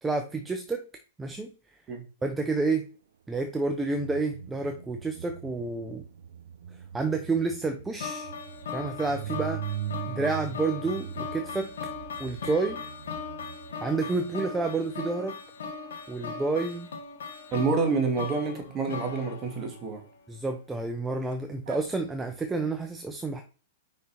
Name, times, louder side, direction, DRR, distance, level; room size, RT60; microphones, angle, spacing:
voice 1, 0.0-0.9 1.2-1.5 2.2-2.9 3.3-6.0 6.9-8.3 8.7-9.7 10.1-11.7 12.2-12.8 13.8-15.4 16.1-16.9 20.3-23.4, right 3 dB, 10° right, 5 dB, 0.8 m, -29 dB
sound 1, 3.6-15.1 21.3-21.4 21.6-21.8, right 10 dB, 80° right, 0.6 m, -41 dB
sound 2, 8.0-20.2, left 5 dB, 80° left, 2.0 m, -39 dB
voice 2, 17.5-20.0, right 4 dB, 25° right, 3 dB, 2.1 m, -28 dB
5.4 x 5.2 x 4.3 m, 0.37 s
hypercardioid pair, 130°, 0 cm